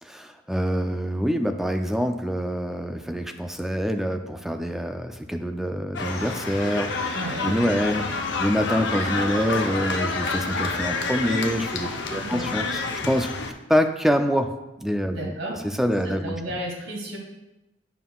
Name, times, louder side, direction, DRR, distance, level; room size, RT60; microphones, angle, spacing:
voice 1, 0.0-7.1 7.4-13.3 13.7-14.5 14.8-15.3 15.6-16.4, equal, ahead, 6 dB, 0.4 m, -25 dB
sound 1, 5.9-13.5, left 3 dB, 65° left, 0.7 m, -28 dB
voice 2, 7.1-7.5 12.1-12.5 15.1-15.6 16.0-17.2, right 1 dB, 80° right, -2 dB, 2.4 m, -33 dB
11.0 x 5.5 x 2.3 m, 0.99 s
head